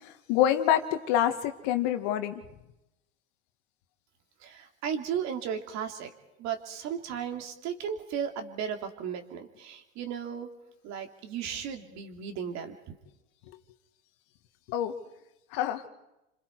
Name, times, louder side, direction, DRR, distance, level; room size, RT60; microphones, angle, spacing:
voice 1, 0.0-2.4 14.7-14.9 15.5-15.8, left 11 dB, 65° left, 8 dB, 1.9 m, -26 dB
voice 2, 4.4-6.1 6.4-10.5 10.8-12.9, right 8 dB, 55° right, 5 dB, 2.9 m, -35 dB
29.0 x 26.0 x 4.8 m, 0.94 s
hypercardioid pair, 90°, 33 cm